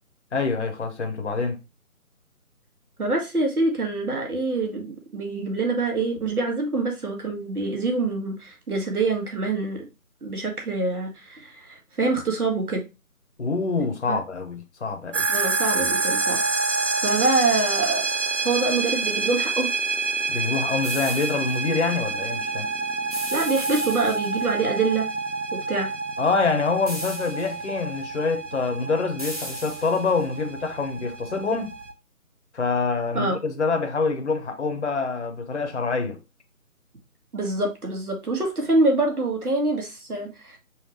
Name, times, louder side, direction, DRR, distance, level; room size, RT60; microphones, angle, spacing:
voice 1, 0.3-1.6 13.4-15.3 20.3-22.7 26.2-31.7 32.5-36.2, left 4 dB, 50° left, 0.8 m, -26 dB
voice 2, 3.0-9.8 10.2-12.8 14.1-14.2 15.3-16.4 17.0-18.1 18.4-19.7 23.3-25.1 25.5-25.9 33.1-33.4 37.3-40.6, right 3 dB, 80° right, 1.8 m, -25 dB
sound 1, 15.1-31.9, right 3 dB, 55° right, 0.6 m, -28 dB
sound 2, 20.8-21.6 23.1-24.5 26.9-27.6 29.2-30.2, equal, 25° right, 0.9 m, -36 dB
5.6 x 3.0 x 3.1 m
figure-of-eight pair, 165°, 44 cm